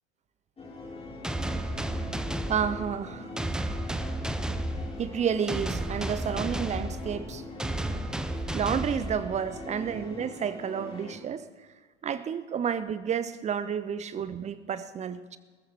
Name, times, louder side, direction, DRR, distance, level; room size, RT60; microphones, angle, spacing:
sound 1, 0.6-11.1, left 2 dB, 15° left, 4.6 m, -42 dB
sound 2, 1.2-9.7, right 1 dB, ahead, 0.5 m, -33 dB
voice 1, 2.5-3.3 5.0-7.4 7.8-8.0 8.5-11.5 12.0-15.4, right 7 dB, 20° right, 0.8 m, -31 dB
27.5 x 14.0 x 3.5 m
figure-of-eight pair, 85°, 36 cm